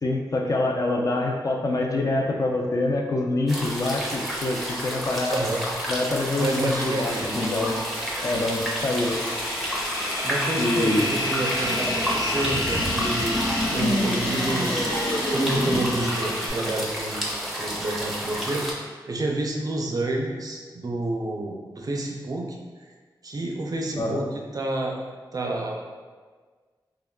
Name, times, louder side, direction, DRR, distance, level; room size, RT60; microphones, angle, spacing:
voice 1, 0.0-5.4 5.9-7.8 8.2-9.2 10.6-11.1 24.0-24.2, left 2 dB, 45° left, 1 dB, 0.4 m, -25 dB
sound 1, 3.5-18.7, equal, ahead, 0.6 m, -31 dB
voice 2, 5.3-5.6 6.4-7.4 10.2-13.4 13.7-17.3 17.6-18.7 19.1-22.5 23.2-24.9 25.3-25.9, right 2 dB, 50° right, 0 dB, 0.4 m, -29 dB
sound 2, 6.4-16.5, left 1 dB, 60° left, 0.9 m, -28 dB
3.4 x 2.2 x 2.2 m, 1.5 s
wide cardioid pair, 85°, 8 cm